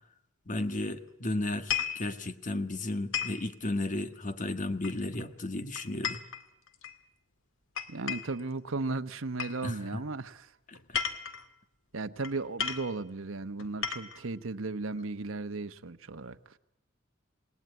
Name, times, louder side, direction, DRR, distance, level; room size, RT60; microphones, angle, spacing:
voice 1, 0.5-6.2 9.6-10.0 10.7-11.0, left 2 dB, 40° left, 9 dB, 1.5 m, -34 dB
sound 1, 1.5-2.0 3.1-3.4 4.8-5.2 5.8-7.0 7.8-8.4 9.4-9.6 10.7-11.5 12.2-12.3 12.6-12.9 13.6-14.2, left 7 dB, 80° left, 2.0 m, -34 dB
voice 2, 7.9-10.5 11.9-16.4, right 3 dB, 80° right, 9 dB, 1.1 m, -35 dB
28.0 x 18.5 x 9.5 m, 0.87 s
head